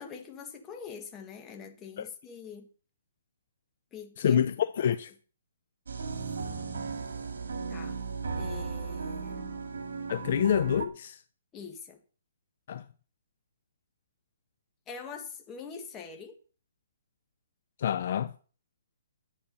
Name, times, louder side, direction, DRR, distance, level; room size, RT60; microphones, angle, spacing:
voice 1, 0.0-2.7 3.9-4.4 4.8-5.0 7.7-8.0 8.4-9.5 11.5-12.0 14.9-16.4, left 6 dB, 15° left, 1.8 m, -44 dB
voice 2, 4.2-5.1 10.1-11.2 12.7-12.9 17.8-18.3, left 9 dB, 50° left, 0.6 m, -27 dB
sound 1, 5.9-10.9, right 5 dB, 85° right, 2.5 m, -36 dB
11.0 x 8.6 x 5.5 m
hypercardioid pair, 165°, 0 cm